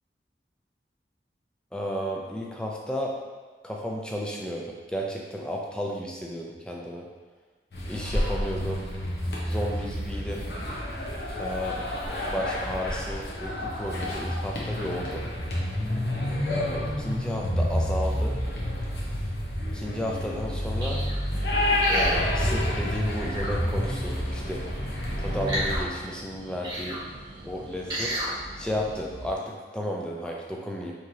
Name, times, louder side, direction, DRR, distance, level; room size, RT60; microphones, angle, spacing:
voice 1, 1.7-3.1 3.6-7.1 7.9-8.9 9.5-10.5 11.4-11.9 12.3-15.2 16.4-18.3 19.7-21.0 21.9-24.6 25.2-27.0 27.4-28.1 28.6-30.9, equal, 5° left, -1 dB, 0.4 m, -33 dB
sound 1, 7.7-25.8, left 1 dB, 65° left, 0.8 m, -29 dB
sound 2, 20.0-29.3, right 1 dB, 85° right, 0.6 m, -45 dB
sound 3, 20.8-21.2 21.8-22.2 23.2-23.5 25.5-25.8 26.6-27.0 27.9-28.3 28.9-29.0, equal, 25° right, 1.0 m, -32 dB
4.7 x 3.0 x 2.7 m, 1.3 s
head